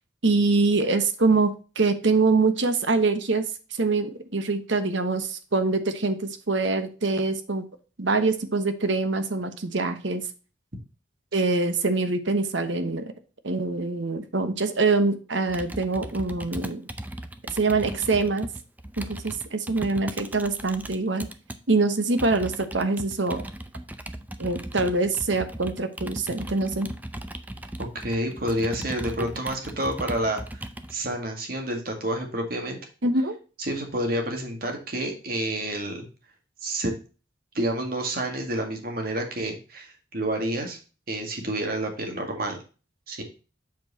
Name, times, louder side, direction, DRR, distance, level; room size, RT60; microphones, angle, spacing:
voice 1, 0.2-3.5 3.8-7.7 8.0-10.2 11.3-13.1 13.4-16.9 17.5-18.5 19.0-21.3 21.7-23.4 24.4-26.9 33.0-33.4, right 3 dB, 75° right, 9 dB, 1.1 m, -24 dB
Computer keyboard, 15.5-21.6 22.2-30.9, right 1 dB, 10° right, 0.5 m, -37 dB
voice 2, 27.9-32.8 33.6-36.1 36.6-36.9 37.5-40.8 41.1-42.6 43.1-43.2, right 1 dB, 50° right, 3 dB, 1.9 m, -29 dB
7.7 x 4.6 x 4.1 m, 0.35 s
head